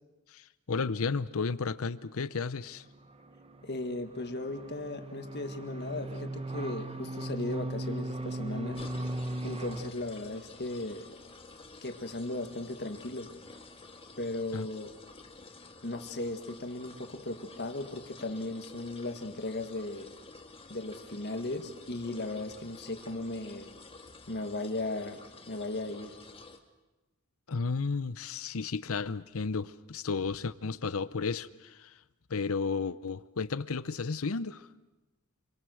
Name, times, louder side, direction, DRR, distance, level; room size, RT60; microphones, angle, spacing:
voice 1, 0.3-2.8 14.5-14.7 27.5-31.9 32.3-34.7, left 4 dB, 65° left, 0.7 m, -33 dB
sound 1, 2.9-9.9, right 1 dB, 25° right, 0.9 m, -38 dB
voice 2, 3.6-8.8 9.4-11.1 11.8-13.3 14.2-14.9 15.8-20.1 20.7-23.7 24.3-25.2 25.5-26.1, left 2 dB, 50° left, 1.8 m, -37 dB
sound 2, 8.7-26.6, left 3 dB, 25° left, 1.6 m, -51 dB
27.5 x 23.0 x 6.4 m
head